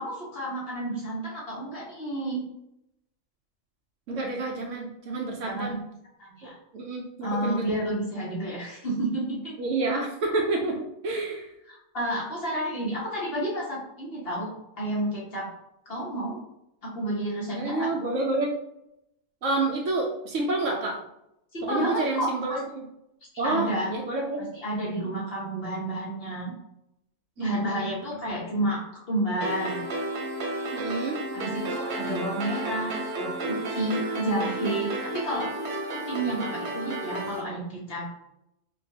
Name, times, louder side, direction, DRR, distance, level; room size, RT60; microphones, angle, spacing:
voice 1, 0.0-2.4 5.5-5.8 6.2-6.6 7.2-9.5 11.7-15.5 15.9-16.4 16.8-17.9 21.5-22.6 23.4-23.9 24.6-26.5 27.4-29.8 31.3-35.5 35.9-38.1, right 1 dB, 45° left, -4 dB, 1.0 m, -30 dB
voice 2, 4.1-5.8 6.4-7.7 9.6-11.5 17.6-18.5 19.4-21.0 21.6-22.9 23.4-24.5 27.4-28.0 30.7-31.2, right 2 dB, 65° right, 0 dB, 0.9 m, -29 dB
sound 1, 29.4-37.4, right 2 dB, 80° right, 1.3 m, -32 dB
4.5 x 2.4 x 2.7 m, 0.82 s
omnidirectional pair, 1.5 m